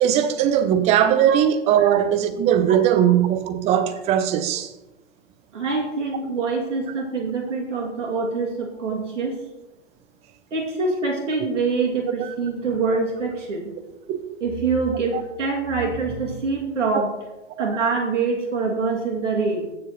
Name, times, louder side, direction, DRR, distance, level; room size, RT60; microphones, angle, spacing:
voice 1, 0.0-4.7 12.2-12.3 14.1-14.2 15.1-15.2 16.9-17.0, right 10 dB, 20° right, 0.5 m, -19 dB
voice 2, 5.5-9.4 10.5-13.7 14.4-17.1 17.6-19.7, right 4 dB, 75° right, 2.6 m, -25 dB
15.5 x 7.2 x 3.1 m
hypercardioid pair, 115°, 37 cm